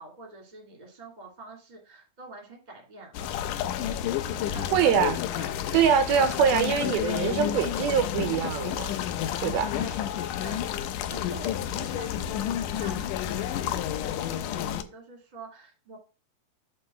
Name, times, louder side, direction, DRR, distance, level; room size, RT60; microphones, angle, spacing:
voice 1, 0.0-3.2 4.1-4.9 5.3-5.5 9.4-10.1 10.4-16.0, right 3 dB, 15° right, 2.0 m, -46 dB
sound 1, 3.1-14.8, left 10 dB, 85° left, 1.9 m, -30 dB
voice 2, 4.7-5.2 5.7-8.9 9.4-9.7, right 8 dB, 80° right, 2.6 m, -24 dB
7.6 x 4.2 x 5.6 m
omnidirectional pair, 4.4 m